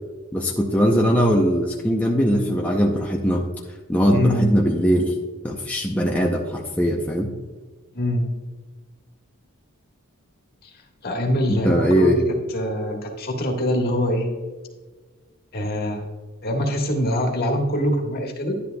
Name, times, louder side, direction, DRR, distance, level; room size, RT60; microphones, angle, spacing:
voice 1, 0.3-3.4 3.9-5.2 5.4-7.3 11.5-12.2, equal, 5° left, -1 dB, 0.7 m, -20 dB
voice 2, 4.1-4.6 7.9-8.3 10.6-10.7 11.0-12.1 12.5-14.3 15.5-16.0 16.4-18.5, equal, 45° left, 2 dB, 1.6 m, -23 dB
11.5 x 10.5 x 2.3 m, 1.4 s
head